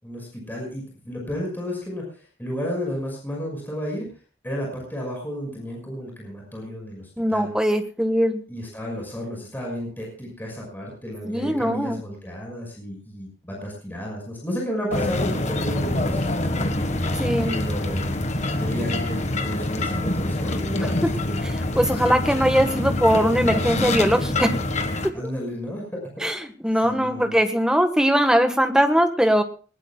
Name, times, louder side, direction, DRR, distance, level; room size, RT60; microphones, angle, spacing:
voice 1, 0.0-4.1 4.4-7.5 8.5-16.6 17.4-18.1 18.6-21.4 21.9-22.0 25.1-26.2 26.8-27.4, equal, 10° left, -1 dB, 5.7 m, -32 dB
voice 2, 7.2-8.4 11.2-12.0 17.2-17.6 20.8-21.1 21.4-24.6 26.2-29.4, equal, 5° right, 6 dB, 1.5 m, -21 dB
sound 1, 14.9-25.1, left 1 dB, 40° left, 1.5 m, -25 dB
20.5 x 20.0 x 2.4 m, 0.37 s
head